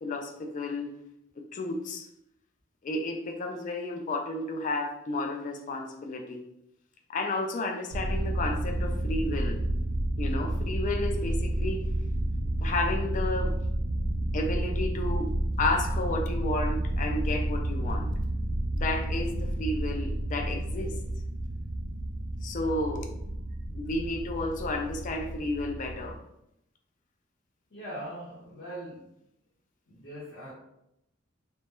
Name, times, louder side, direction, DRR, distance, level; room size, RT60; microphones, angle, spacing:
voice 1, 0.0-0.9 1.4-2.1 2.8-6.4 7.1-9.6 10.2-11.8 12.6-13.5 14.3-18.1 18.7-21.0 22.4-23.1 23.7-26.2, left 2 dB, 40° left, 3 dB, 0.3 m, -32 dB
sound 1, 7.9-26.2, right 1 dB, 65° right, 0.4 m, -30 dB
voice 2, 27.7-29.1 29.9-30.5, right 1 dB, 60° left, -8 dB, 0.8 m, -41 dB
2.2 x 2.1 x 2.9 m, 0.82 s
head